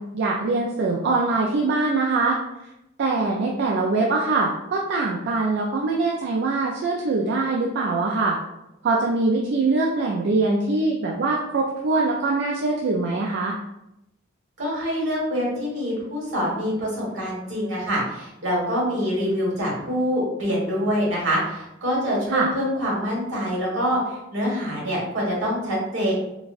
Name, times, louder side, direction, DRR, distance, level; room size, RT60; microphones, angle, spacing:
voice 1, 0.0-2.4 3.0-8.4 8.8-13.6 22.3-22.5, right 3 dB, 60° right, -1 dB, 0.4 m, -23 dB
voice 2, 14.6-26.1, equal, 80° right, -5 dB, 1.4 m, -25 dB
4.0 x 2.2 x 2.4 m, 0.88 s
head